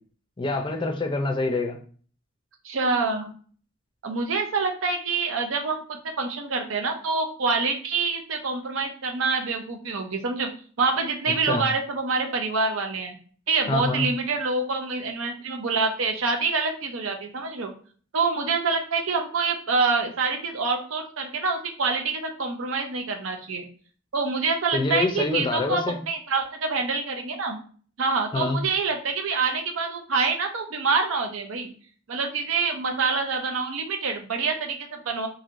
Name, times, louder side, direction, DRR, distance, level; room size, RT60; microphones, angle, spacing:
voice 1, 0.4-1.8 11.5-11.7 13.7-14.1 24.7-26.0 28.3-28.6, left 3 dB, 25° left, 3 dB, 0.5 m, -26 dB
voice 2, 2.6-3.3 4.0-10.5 10.8-13.2 13.5-17.7 18.1-23.6 24.1-27.6 28.0-31.7 32.1-35.3, right 4 dB, 75° right, 4 dB, 0.6 m, -26 dB
3.0 x 2.6 x 2.6 m, 0.43 s
head